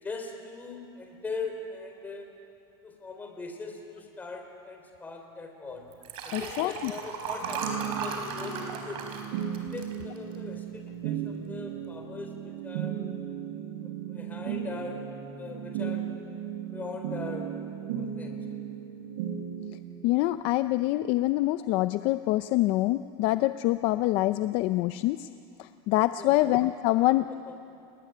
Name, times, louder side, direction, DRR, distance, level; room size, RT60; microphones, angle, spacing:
voice 1, 0.0-2.3 2.8-5.8 6.2-9.1 9.7-13.0 13.8-15.1 15.4-16.1 16.7-17.6 18.0-18.3 26.2-26.5 27.0-27.1 27.5-27.6, left 3 dB, 15° left, 3 dB, 4.0 m, -40 dB
Liquid, 5.9-10.6 11.0-11.3 11.6-11.7, right 5 dB, 45° right, 4.5 m, -36 dB
voice 2, 6.3-6.9 20.0-25.3 25.6-27.3, left 17 dB, 45° left, 12 dB, 0.6 m, -25 dB
sound 1, 7.4-19.7, right 9 dB, 60° right, 3.4 m, -36 dB
29.0 x 20.0 x 10.0 m, 2.5 s
supercardioid pair, 155°, 13 cm